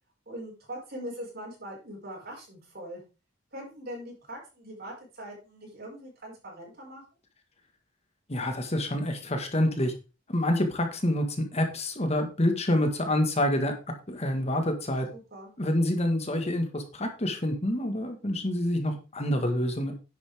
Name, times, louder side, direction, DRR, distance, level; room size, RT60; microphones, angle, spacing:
voice 1, 0.3-3.0 3.5-7.0 15.1-15.5, right 1 dB, 55° right, 0 dB, 5.5 m, -41 dB
voice 2, 8.3-9.9 10.3-11.3 11.5-13.7 14.1-15.1 15.6-19.9, left 1 dB, 35° left, 5 dB, 1.7 m, -27 dB
10.5 x 8.4 x 3.6 m, 0.31 s
head